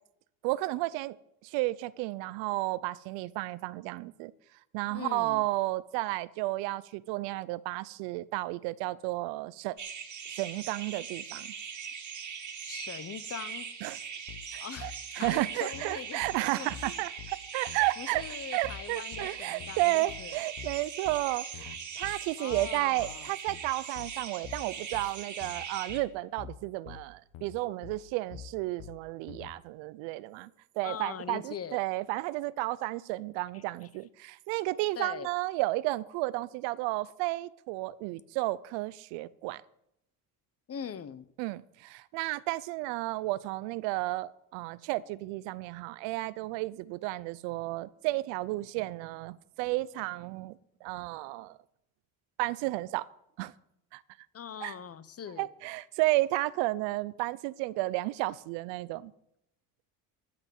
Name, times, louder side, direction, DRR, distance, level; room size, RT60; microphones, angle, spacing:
voice 1, 0.4-1.2 1.4-4.3 4.7-9.8 10.3-11.5 13.8-14.0 14.5-18.2 18.5-30.5 30.8-39.6 41.4-51.6 52.4-53.1 53.4-53.5 53.9-54.0 54.6-54.7 55.4-59.1, right 19 dB, 85° right, 20 dB, 0.6 m, -32 dB
voice 2, 4.9-5.4 12.6-13.7 14.6-16.2 16.5-17.0 18.0-20.4 22.4-23.3 30.8-31.8 33.5-33.9 35.0-35.3 40.7-41.2 54.3-55.5, left 8 dB, 35° left, 15 dB, 0.8 m, -42 dB
sound 1, 9.8-26.0, right 7 dB, 40° right, 2.0 m, -41 dB
sound 2, 14.3-29.5, left 9 dB, 80° left, 1.2 m, -47 dB
14.0 x 6.0 x 7.1 m, 0.78 s
supercardioid pair, 90°, 43 cm